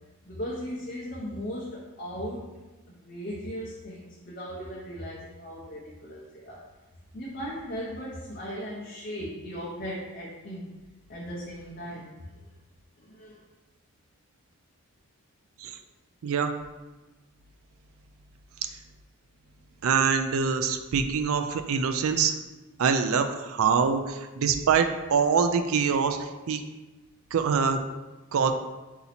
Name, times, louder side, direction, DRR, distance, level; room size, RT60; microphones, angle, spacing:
voice 1, 0.3-2.5 2.9-6.6 7.1-10.7 11.1-12.4 13.0-13.4, equal, 40° left, -5 dB, 0.6 m, -37 dB
voice 2, 19.8-22.3 22.8-26.2 26.5-26.6 27.3-27.8 28.3-28.5, right 6 dB, 75° right, 7 dB, 0.4 m, -24 dB
4.1 x 2.8 x 4.1 m, 1.1 s
head